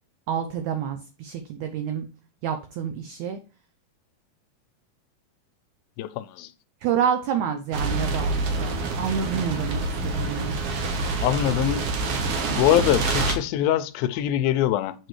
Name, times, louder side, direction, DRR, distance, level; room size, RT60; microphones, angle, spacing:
voice 1, 0.3-2.1 2.4-3.4 6.8-10.5, right 8 dB, 80° right, 1.7 m, -28 dB
voice 2, 6.0-6.5 11.2-11.9 12.6-15.1, left 12 dB, 90° left, 2.4 m, -23 dB
sound 1, 7.7-13.4, right 3 dB, 65° right, 1.6 m, -26 dB
7.7 x 4.7 x 3.1 m
omnidirectional pair, 4.1 m